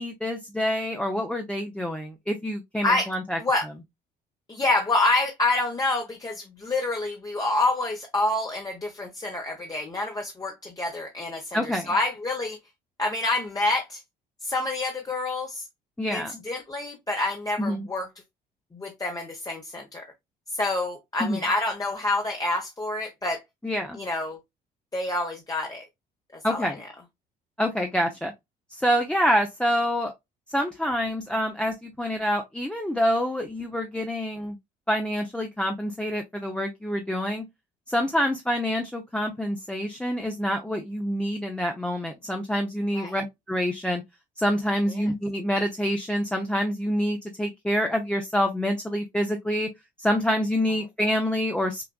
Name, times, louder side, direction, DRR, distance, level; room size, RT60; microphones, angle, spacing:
voice 1, 0.0-3.4 11.5-11.9 16.0-16.3 17.6-17.9 21.2-21.4 23.6-24.0 26.4-26.8 27.6-28.3 28.7-30.1 30.5-34.6 34.9-37.5 37.9-44.0 44.4-49.7 50.0-51.9, equal, 5° left, 0.7 m, -27 dB
voice 2, 4.5-12.6 13.0-14.0 14.4-15.6 16.1-18.1 18.7-20.0 20.5-23.4 23.9-24.4 24.9-25.8 26.5-26.7 42.9-43.1, left 2 dB, 20° left, 1.0 m, -27 dB
5.9 x 2.5 x 2.3 m
supercardioid pair, 85°, 18 cm